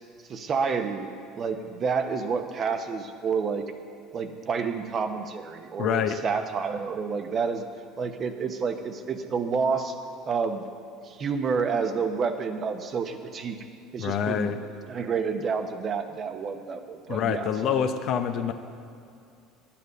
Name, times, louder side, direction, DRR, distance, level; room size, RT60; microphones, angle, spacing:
voice 1, 0.3-1.1 1.4-3.6 4.1-7.6 8.0-9.9 10.3-10.6 11.0-13.6 13.9-14.5 14.9-17.8, right 5 dB, 45° right, 7 dB, 1.0 m, -29 dB
voice 2, 5.8-6.2 14.0-14.6 17.1-18.5, left 8 dB, 55° left, 8 dB, 0.8 m, -26 dB
11.0 x 8.7 x 6.6 m, 2.4 s
hypercardioid pair, 75°, 0 cm